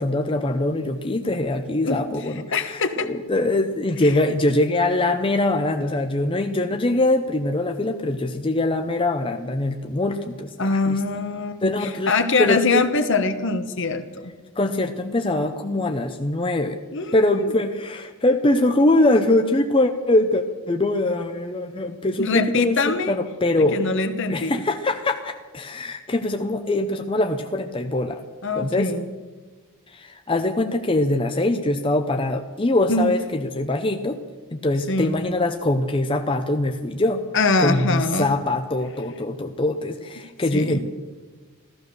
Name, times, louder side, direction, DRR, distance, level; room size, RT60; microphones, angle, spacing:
voice 1, 0.0-10.5 10.9-11.0 11.6-12.1 12.4-12.7 14.6-16.8 17.1-22.8 23.1-23.8 24.3-28.2 28.5-28.9 29.9-34.2 34.5-37.2 37.6-40.8, left 2 dB, 25° left, 5 dB, 0.7 m, -23 dB
voice 2, 1.8-3.1 4.0-4.2 10.6-14.3 16.9-17.5 22.2-23.1 23.6-24.6 28.4-29.0 32.9-33.1 34.9-35.2 37.3-38.3 40.5-40.8, left 3 dB, 55° left, 9 dB, 1.2 m, -23 dB
15.0 x 14.0 x 6.7 m, 1.4 s
head